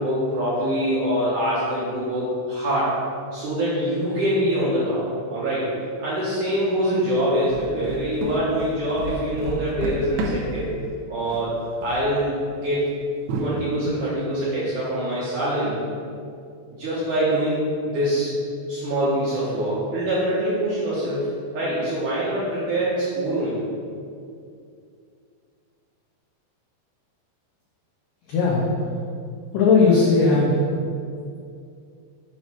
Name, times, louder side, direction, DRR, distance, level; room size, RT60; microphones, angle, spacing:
voice 1, 0.0-2.9 3.3-5.0 5.3-5.7 6.0-10.7 11.1-11.5 11.8-13.0 13.4-15.8 16.7-17.6 17.9-18.4 18.7-23.6, right 1 dB, 70° right, -9 dB, 2.0 m, -24 dB
sound 1, 7.5-10.7 11.2-11.6 11.8-12.0 12.6-12.7 13.3-13.9, right 2 dB, 85° right, 2.9 m, -30 dB
voice 2, 28.3-28.6 29.5-30.5, left 4 dB, 90° left, -5 dB, 1.9 m, -17 dB
7.8 x 3.1 x 6.0 m, 2.4 s
omnidirectional pair, 5.1 m